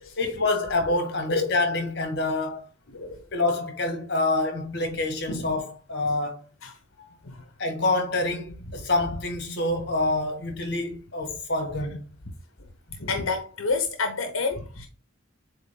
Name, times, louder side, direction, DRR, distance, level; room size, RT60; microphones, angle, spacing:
voice 1, 0.2-2.6 3.3-6.4 7.6-12.1 13.0-13.1, left 2 dB, 55° left, 1.8 m, -27 dB
voice 2, 2.9-3.2 5.3-5.5 6.6-6.7 7.0-7.5 13.0-14.9, left 4 dB, 85° left, 0.9 m, -29 dB
7.9 x 3.2 x 3.7 m
head